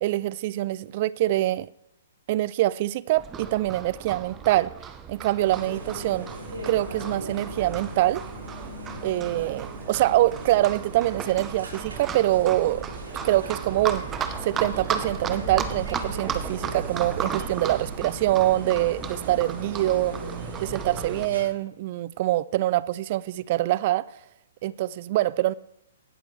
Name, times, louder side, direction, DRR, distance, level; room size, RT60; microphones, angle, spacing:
voice 1, 0.0-1.7 2.3-4.7 5.1-6.3 6.7-8.2 9.0-12.8 13.2-20.1 20.6-24.0 24.6-25.5, right 15 dB, 45° right, 0.3 m, -24 dB
Livestock farm animals working animals, 3.2-21.3, right 7 dB, 20° right, 0.7 m, -35 dB
sound 1, 5.4-21.4, right 1 dB, 85° right, 3.9 m, -39 dB
17.5 x 6.7 x 3.2 m
hypercardioid pair, 140°, 0 cm